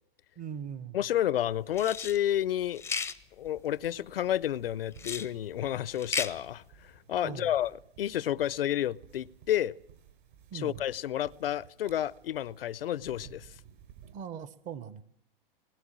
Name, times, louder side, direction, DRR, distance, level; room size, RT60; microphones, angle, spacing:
voice 1, 0.4-1.0 7.2-7.5 10.5-10.8 14.1-15.0, right 8 dB, 25° right, 1.1 m, -40 dB
voice 2, 0.9-2.8 3.4-6.6 7.1-9.7 10.5-13.5, left 11 dB, 75° left, 0.7 m, -30 dB
sound 1, 1.7-2.2 2.8-3.2 5.0-5.3 5.9-6.3, left 5 dB, 10° left, 0.7 m, -34 dB
sound 2, 3.4-14.2, right 9 dB, 60° right, 5.7 m, -57 dB
21.0 x 18.0 x 7.5 m
hypercardioid pair, 125°, 29 cm